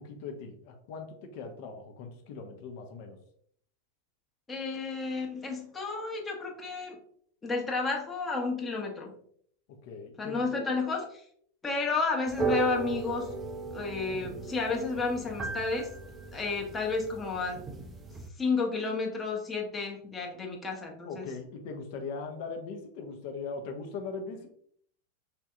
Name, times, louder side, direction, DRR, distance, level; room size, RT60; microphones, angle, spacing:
voice 1, 0.0-3.2 9.7-10.4 16.3-16.4 21.0-24.5, left 4 dB, 45° left, 4 dB, 0.7 m, -40 dB
voice 2, 4.5-7.0 7.4-9.1 10.2-11.2 11.6-13.3 13.7-15.9 16.3-17.6 18.4-21.3, left 4 dB, 15° left, 0 dB, 0.9 m, -31 dB
sound 1, 12.3-18.3, right 3 dB, 20° right, 0.4 m, -36 dB
5.0 x 2.6 x 2.4 m, 0.64 s
figure-of-eight pair, 90°, 0 cm